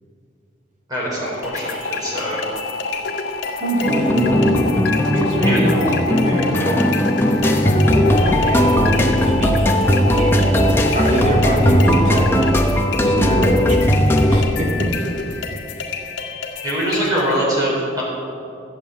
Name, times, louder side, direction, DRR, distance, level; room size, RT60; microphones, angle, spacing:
voice 1, 0.9-2.4 5.4-5.6 16.6-18.0, equal, 20° right, -7 dB, 4.5 m, -23 dB
sound 1, 1.2-12.6, left 3 dB, 50° left, 0.8 m, -28 dB
sound 2, 1.4-17.4, left 4 dB, 75° left, 1.9 m, -31 dB
voice 2, 3.6-4.6 5.1-7.0 7.5-12.5 12.9-13.9 14.3-14.9, right 1 dB, 40° right, -1 dB, 2.7 m, -23 dB
sound 3, 3.8-14.4, equal, 10° left, 1.0 m, -17 dB
15.0 x 7.7 x 8.8 m, 2.5 s
head